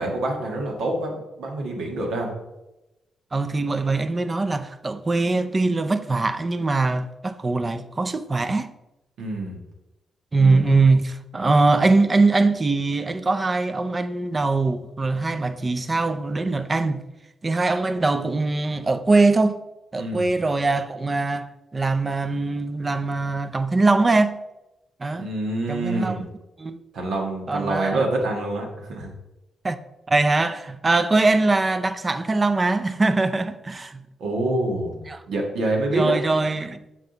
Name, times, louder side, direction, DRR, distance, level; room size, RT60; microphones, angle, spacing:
voice 1, 0.0-2.3 9.2-9.6 10.4-10.8 11.3-11.5 20.0-20.3 25.2-26.3 26.9-29.1 34.2-35.0 35.3-36.2, right 2 dB, 80° right, 1.6 m, -26 dB
voice 2, 3.3-8.7 10.3-17.0 17.4-19.6 19.9-24.4 25.0-25.3 25.7-26.3 26.6-26.8 27.5-28.0 29.6-29.8 30.1-34.0 35.1-35.2 35.9-36.8, right 3 dB, 25° right, 0.4 m, -22 dB
7.5 x 4.8 x 3.9 m
cardioid pair, 110°, 0 cm